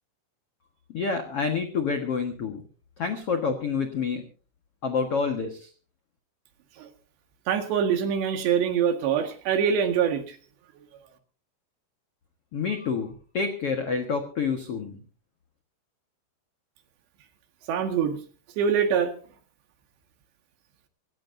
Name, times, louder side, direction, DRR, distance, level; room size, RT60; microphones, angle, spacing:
voice 1, 0.9-2.6 3.0-4.2 4.8-5.7 12.5-15.0, left 5 dB, 75° left, 5 dB, 1.3 m, -28 dB
voice 2, 7.5-10.4 17.7-18.2 18.6-19.1, right 7 dB, 70° right, 6 dB, 3.9 m, -24 dB
26.5 x 15.5 x 2.7 m, 0.38 s
omnidirectional pair, 5.3 m